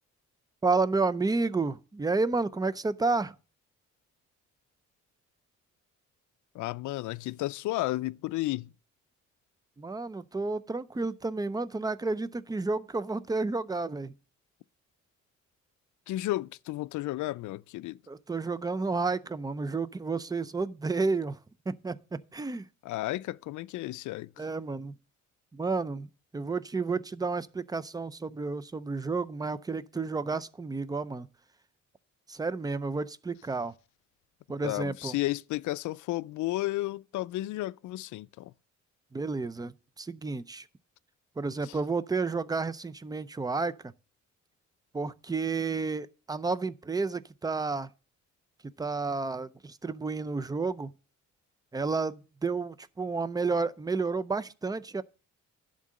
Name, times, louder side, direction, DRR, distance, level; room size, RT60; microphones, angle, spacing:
voice 1, 0.6-3.3 9.8-14.1 18.1-21.4 21.7-22.7 24.4-24.9 25.5-31.3 32.3-33.7 34.5-35.1 39.1-40.7 41.4-43.9 44.9-47.9 48.8-50.9 51.7-55.0, right 3 dB, 15° right, 0.5 m, -31 dB
voice 2, 6.5-8.7 16.1-18.0 22.8-24.5 34.6-38.5 41.6-41.7, left 17 dB, 80° left, 0.5 m, -33 dB
11.0 x 3.8 x 7.5 m
cardioid pair, 90°, 30 cm